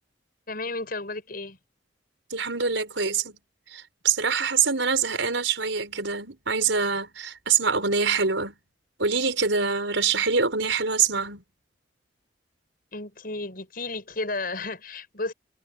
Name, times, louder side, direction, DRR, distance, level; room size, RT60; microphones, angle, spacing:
voice 1, 0.5-1.6 12.9-15.3, left 2 dB, 50° left, 7.8 m, -33 dB
voice 2, 2.3-3.4 3.7-8.6 9.0-11.4, right 5 dB, 85° right, 5.3 m, -25 dB
head